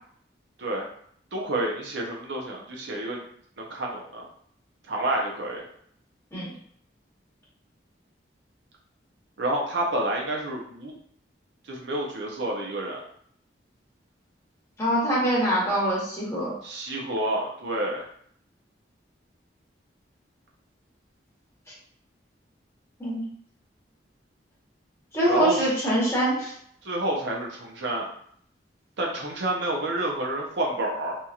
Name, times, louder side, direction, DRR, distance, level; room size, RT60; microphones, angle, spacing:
voice 1, 1.3-3.2 3.6-4.3 4.9-5.6 9.4-10.9 11.6-13.0 16.6-18.0 25.3-25.7 26.8-28.1 29.0-31.2, right 1 dB, 80° right, -1 dB, 0.6 m, -29 dB
voice 2, 14.8-16.5 23.0-23.2 25.1-26.5, right 1 dB, 15° left, -7 dB, 1.0 m, -24 dB
2.8 x 2.7 x 2.3 m, 0.65 s
head